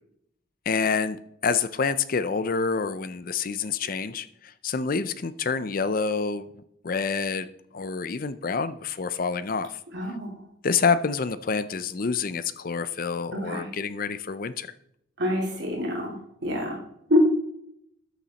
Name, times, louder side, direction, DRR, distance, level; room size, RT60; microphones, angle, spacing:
voice 1, 0.7-6.5 6.8-7.5 7.7-9.8 10.6-14.7, left 5 dB, 45° left, 14 dB, 0.5 m, -27 dB
voice 2, 9.9-10.3 13.3-13.7 15.2-16.8 17.1-17.2, left 1 dB, 60° right, -1 dB, 2.7 m, -26 dB
13.0 x 7.2 x 4.1 m, 0.73 s
head